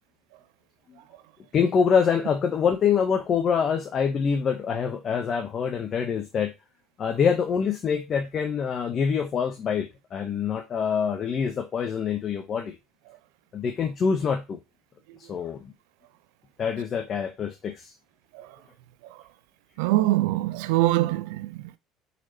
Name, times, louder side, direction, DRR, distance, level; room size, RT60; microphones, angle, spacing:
voice 1, 1.5-6.5 7.0-12.8 13.5-14.6 15.2-15.7 16.6-17.9, left 6 dB, 45° left, 0.7 m, -25 dB
voice 2, 19.8-21.8, right 17 dB, 75° right, 0.3 m, -24 dB
4.5 x 4.2 x 2.7 m
hypercardioid pair, 70°, 0 cm